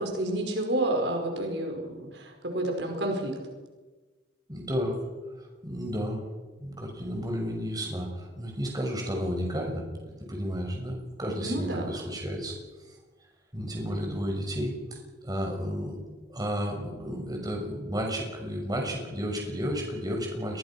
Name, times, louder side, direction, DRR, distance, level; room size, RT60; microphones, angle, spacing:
voice 1, 0.0-3.3 11.4-11.9, right 1 dB, 75° right, 3 dB, 5.1 m, -30 dB
voice 2, 4.5-5.0 5.4-6.2 6.6-9.8 10.3-12.6 13.5-16.0 16.3-20.6, equal, 20° right, 1 dB, 6.2 m, -32 dB
27.0 x 22.0 x 6.1 m, 1.3 s
head